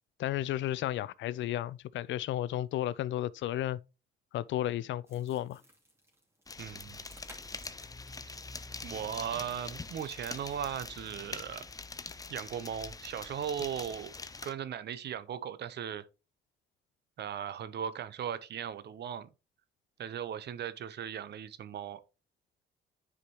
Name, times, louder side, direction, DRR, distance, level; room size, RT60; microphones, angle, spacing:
voice 1, 0.2-3.8 4.3-5.6, left 13 dB, 70° left, 0.4 m, -33 dB
Seed Pod Crush, 5.1-11.1, right 1 dB, 10° right, 2.6 m, -59 dB
sound 1, 6.5-14.5, left 3 dB, 20° left, 0.6 m, -44 dB
voice 2, 6.6-7.0 8.8-11.6 12.3-14.1 14.4-16.1 17.2-19.3 20.0-22.0, right 9 dB, 60° right, 0.7 m, -38 dB
9.6 x 5.0 x 2.9 m
cardioid pair, 90°, 20 cm